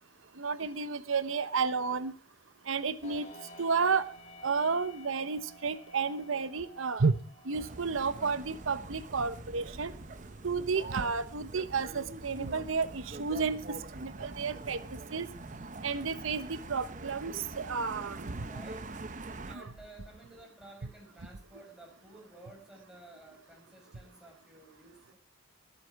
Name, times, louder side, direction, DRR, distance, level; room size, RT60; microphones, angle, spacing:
voice 1, 0.4-2.1 2.7-3.3 3.6-4.1 4.4-7.1 7.5-9.9 10.4-13.6 14.0-14.8 15.1-15.3 15.8-18.4 19.5-19.7, right 5 dB, 80° right, 13 dB, 0.9 m, -31 dB
sound 1, 3.0-16.6, left 1 dB, 35° left, 2.6 m, -56 dB
sound 2, 7.5-19.6, right 2 dB, 40° right, 0.8 m, -44 dB
voice 2, 18.4-18.9 19.4-25.2, right 2 dB, 5° right, -1 dB, 5.2 m, -53 dB
21.0 x 8.5 x 4.7 m, 0.37 s
head